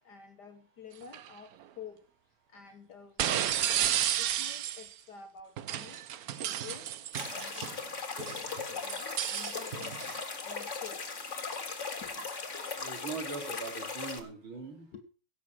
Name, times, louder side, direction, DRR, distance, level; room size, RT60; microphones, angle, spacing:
voice 1, 0.0-2.0 2.5-6.0 6.4-6.9 7.3-11.0 12.0-12.3 13.7-13.8 14.9-15.0, left 7 dB, 60° left, 1.6 m, -50 dB
sound 1, 1.0-1.3 3.2-4.9 5.6-7.8 8.2-10.2, right 11 dB, 60° right, 1.0 m, -32 dB
sound 2, 7.1-14.2, left 4 dB, 40° left, 2.2 m, -38 dB
voice 2, 12.8-14.9, right 4 dB, 80° right, 4.0 m, -41 dB
17.0 x 7.3 x 6.1 m
omnidirectional pair, 2.2 m